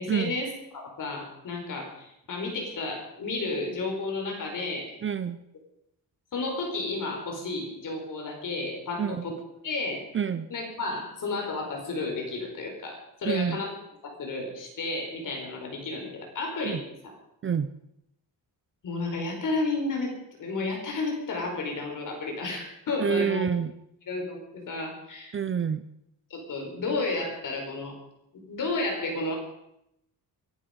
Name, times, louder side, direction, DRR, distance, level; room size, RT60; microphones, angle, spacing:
voice 1, 0.0-4.9 6.3-9.4 9.6-10.0 10.5-13.8 14.2-17.1 18.8-23.5 24.1-25.3 26.3-27.9 28.3-29.3, left 3 dB, 50° left, 2 dB, 5.0 m, -32 dB
voice 2, 5.0-5.4 9.0-9.3 10.1-10.5 13.2-13.6 16.6-16.8 17.4-17.7 23.0-23.7 25.3-25.8, right 7 dB, 30° right, 13 dB, 0.5 m, -27 dB
23.5 x 11.0 x 5.3 m, 0.81 s
wide cardioid pair, 180°, 39 cm